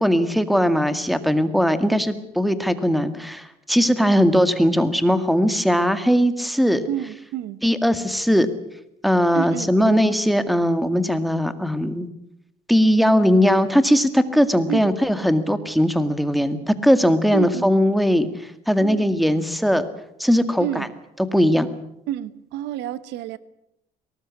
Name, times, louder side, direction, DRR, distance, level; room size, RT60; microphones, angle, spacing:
voice 1, 0.0-6.9 7.6-8.5 9.0-12.1 12.7-18.3 18.7-19.9 20.2-20.9 21.3-21.7, equal, ahead, 10 dB, 2.0 m, -19 dB
voice 2, 6.9-7.6 9.3-9.9 14.7-14.9 17.3-17.6 18.8-19.1 20.6-20.9 22.1-23.4, right 12 dB, 90° right, 16 dB, 1.2 m, -29 dB
22.5 x 19.0 x 8.5 m, 0.81 s
cardioid pair, 110°, 17 cm